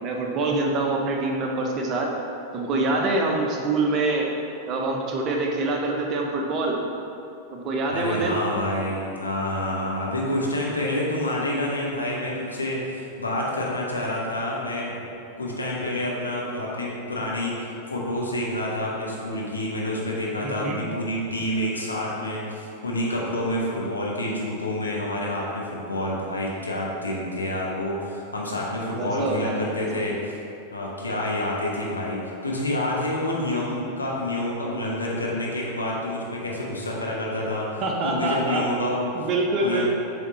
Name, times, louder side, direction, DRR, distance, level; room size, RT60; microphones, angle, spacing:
voice 1, 0.0-2.1 2.5-4.3 4.7-6.8 7.5-8.4 20.4-20.8 28.9-30.1 37.8-38.6 39.1-39.9, right 2 dB, 35° right, 0 dB, 0.8 m, -25 dB
voice 2, 7.9-15.0 15.4-30.4 30.7-39.1 39.6-39.9, left 1 dB, 80° left, -4 dB, 1.1 m, -28 dB
7.4 x 3.6 x 4.3 m, 2.7 s
figure-of-eight pair, 90°, 0 cm